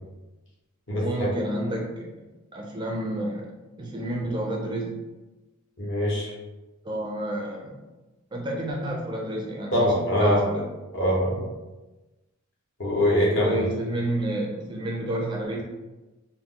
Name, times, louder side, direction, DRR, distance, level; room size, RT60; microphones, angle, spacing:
voice 1, 1.0-2.2 2.5-5.0 6.8-7.8 8.3-10.6 11.3-11.4 13.3-15.6, right 1 dB, 20° right, -1 dB, 0.3 m, -30 dB
voice 2, 5.8-6.3 9.7-10.4 10.9-11.4 12.8-13.6, left 1 dB, 60° left, -4 dB, 0.9 m, -23 dB
2.3 x 2.0 x 3.6 m, 1.1 s
head